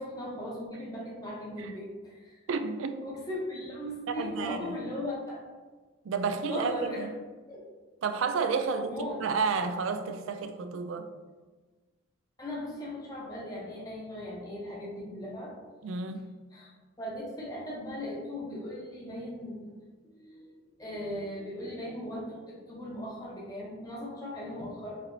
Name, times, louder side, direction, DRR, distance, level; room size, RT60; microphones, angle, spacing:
voice 1, 0.0-2.4 3.0-5.4 6.5-7.1 7.5-7.6 8.9-9.2 12.4-15.5 16.5-16.7 17.0-19.8 20.0-20.4 20.8-25.0, left 1 dB, 20° left, 0.8 m, -38 dB
voice 2, 2.5-3.0 4.2-4.8 6.0-7.1 8.0-11.1 15.8-16.3, right 5 dB, 75° right, 0.3 m, -31 dB
4.4 x 2.9 x 2.6 m
head